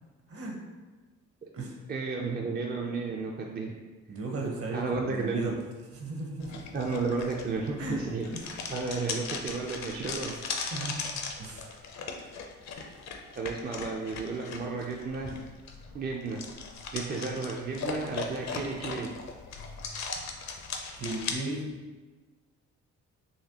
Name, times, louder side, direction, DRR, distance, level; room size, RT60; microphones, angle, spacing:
voice 1, 1.9-3.8 4.7-5.4 6.7-8.3 8.7-10.4 13.3-15.4 15.9-16.4 16.9-19.1, right 4 dB, 30° right, 0 dB, 0.4 m, -33 dB
voice 2, 4.1-5.6 5.9-6.6 7.8-8.0 8.3-8.4 10.3-10.4 10.7-11.0 11.4-11.8 21.0-21.7, right 2 dB, 50° right, 0 dB, 0.9 m, -35 dB
sound 1, 6.4-21.3, left 5 dB, 65° left, 0.6 m, -38 dB
4.1 x 2.9 x 2.8 m, 1.3 s
cardioid pair, 90°, 30 cm